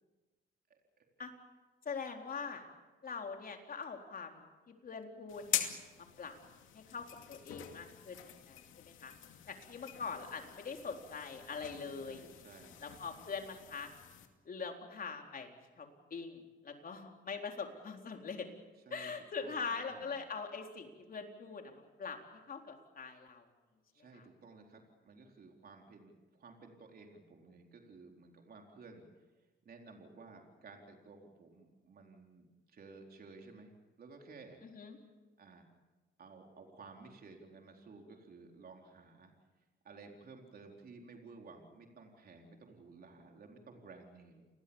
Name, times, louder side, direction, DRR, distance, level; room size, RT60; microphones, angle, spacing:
voice 1, 0.7-1.1 12.0-12.8 18.9-19.1 19.4-20.1 23.9-29.1 29.6-33.7 34.0-34.6 35.4-35.7 36.2-39.3 39.8-44.5, right 4 dB, 50° right, 2 dB, 4.2 m, -55 dB
voice 2, 1.9-2.6 3.0-5.7 6.0-6.3 6.7-9.1 9.5-12.3 12.8-13.9 14.5-18.5 18.9-23.4 24.1-24.2 34.6-35.0, left 5 dB, 45° left, 3 dB, 4.1 m, -43 dB
sound 1, 5.3-14.3, left 11 dB, 85° left, 2.5 m, -44 dB
29.0 x 20.5 x 7.3 m, 1.2 s
cardioid pair, 90°, 20 cm